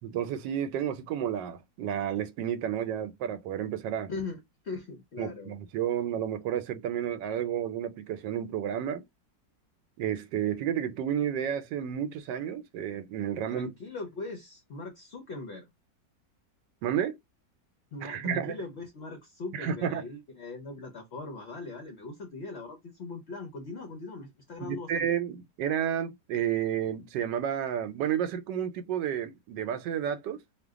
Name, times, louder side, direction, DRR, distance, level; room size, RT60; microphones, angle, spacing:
voice 1, 0.0-4.1 5.2-9.0 10.0-13.7 16.8-17.2 18.0-18.6 19.5-20.0 24.6-30.4, right 9 dB, 80° right, 1.2 m, -31 dB
voice 2, 4.1-5.6 13.5-15.7 17.9-25.2, left 3 dB, 60° left, 0.7 m, -40 dB
3.0 x 2.2 x 3.4 m
omnidirectional pair, 1.9 m